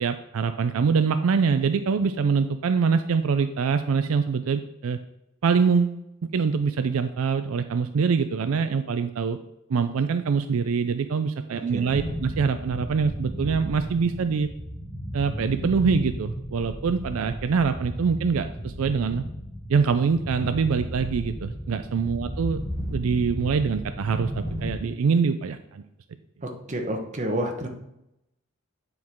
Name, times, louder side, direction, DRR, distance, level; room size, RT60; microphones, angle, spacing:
voice 1, 0.0-5.0 5.4-6.0 6.3-9.4 9.7-14.5 15.1-19.2 19.7-22.6 22.9-25.8, right 5 dB, 80° right, 9 dB, 0.4 m, -24 dB
voice 2, 11.5-11.8 26.4-27.7, right 1 dB, 35° right, 2 dB, 1.1 m, -30 dB
sound 1, 11.9-24.8, equal, 35° left, 1.9 m, -34 dB
9.3 x 4.6 x 3.6 m, 0.84 s
head